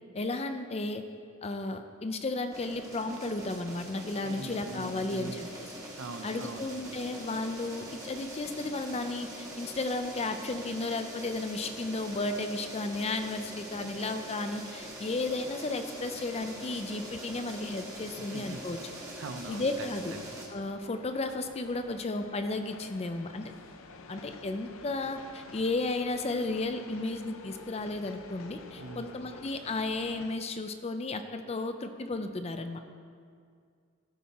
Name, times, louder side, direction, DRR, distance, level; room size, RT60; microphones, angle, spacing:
voice 1, 0.1-1.0 1.4-5.7 6.2-18.8 19.5-20.1 20.5-23.5 24.1-32.8, left 2 dB, 30° left, 8 dB, 0.5 m, -34 dB
sound 1, 2.5-20.5, right 1 dB, 15° right, 1.3 m, -43 dB
voice 2, 4.2-5.5 6.0-6.7 18.3-18.6 19.2-19.7 20.1-20.3 28.8-29.2, right 2 dB, 60° right, 8 dB, 0.6 m, -42 dB
sound 2, 15.3-30.4, left 4 dB, 75° left, 0.6 m, -51 dB
14.5 x 5.6 x 4.2 m, 2.2 s
head